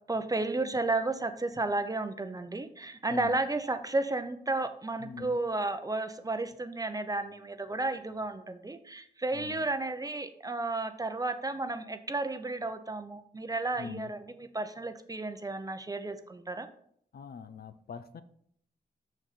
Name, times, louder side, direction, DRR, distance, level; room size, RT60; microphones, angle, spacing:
voice 1, 0.1-16.7, right 2 dB, 20° right, 9 dB, 0.7 m, -33 dB
voice 2, 3.1-3.4 5.0-5.4 9.3-9.7 13.8-14.1 17.1-18.2, left 5 dB, 65° left, 12 dB, 0.6 m, -42 dB
6.4 x 6.4 x 4.1 m, 0.67 s
cardioid pair, 90°, 17 cm